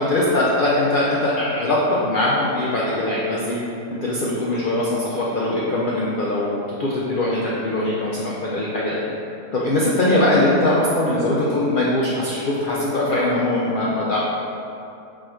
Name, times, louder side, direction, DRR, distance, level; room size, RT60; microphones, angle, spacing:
voice 1, 0.0-3.6 4.0-9.0 9.5-14.2, left 1 dB, 90° left, -6 dB, 0.4 m, -21 dB
4.8 x 2.4 x 4.3 m, 2.7 s
omnidirectional pair, 1.6 m